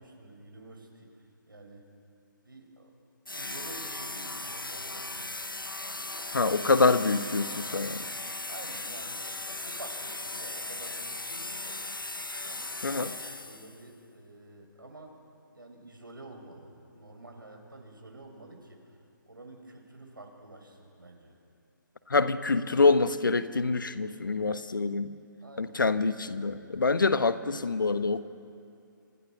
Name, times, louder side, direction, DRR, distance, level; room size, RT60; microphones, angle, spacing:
voice 1, 0.0-1.9 2.4-2.9 3.3-5.3 5.8-6.1 6.7-7.1 7.4-7.9 8.5-11.9 12.4-15.2 15.5-19.0 19.3-21.4 25.4-26.3, right 2 dB, 80° right, 2 dB, 7.1 m, -49 dB
sound 1, 3.3-13.8, left 2 dB, 85° left, 1.5 m, -38 dB
voice 2, 6.3-8.0 12.8-13.1 22.1-25.1 25.6-28.2, left 3 dB, 70° left, 12 dB, 1.4 m, -25 dB
30.0 x 25.0 x 6.6 m, 2.5 s
figure-of-eight pair, 135°, 11 cm